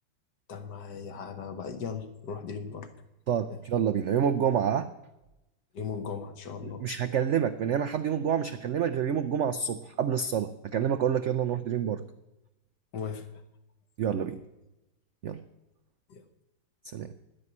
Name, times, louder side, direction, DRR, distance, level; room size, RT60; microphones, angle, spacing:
voice 1, 0.5-2.9 3.5-3.6 5.7-6.9 12.9-13.3 16.1-16.2, left 6 dB, 70° left, 8 dB, 1.8 m, -37 dB
voice 2, 3.3-4.9 6.6-12.0 14.0-14.4 15.2-15.4 16.9-17.1, right 8 dB, 75° right, 11 dB, 0.6 m, -28 dB
10.5 x 9.5 x 9.7 m, 0.95 s
omnidirectional pair, 1.9 m